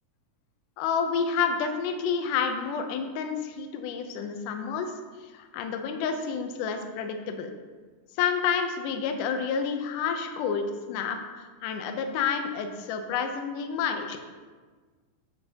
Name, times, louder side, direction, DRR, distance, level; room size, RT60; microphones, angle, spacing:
voice 1, 0.8-4.9 5.2-7.5 8.2-14.2, left 6 dB, 75° left, 6 dB, 2.0 m, -29 dB
10.0 x 7.0 x 2.8 m, 1.4 s
omnidirectional pair, 4.1 m